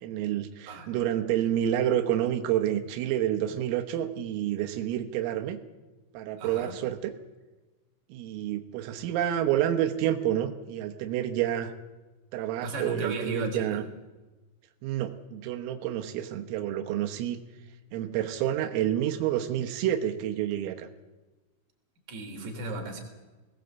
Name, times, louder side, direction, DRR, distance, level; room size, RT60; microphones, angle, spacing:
voice 1, 0.0-5.6 6.1-7.1 8.1-11.7 12.3-13.8 14.8-17.4 17.9-20.9, right 11 dB, 85° right, 6 dB, 3.8 m, -29 dB
voice 2, 6.4-6.7 12.6-13.8 22.1-23.0, right 2 dB, 40° right, 2 dB, 4.4 m, -35 dB
20.5 x 18.0 x 8.1 m, 1.2 s
omnidirectional pair, 5.8 m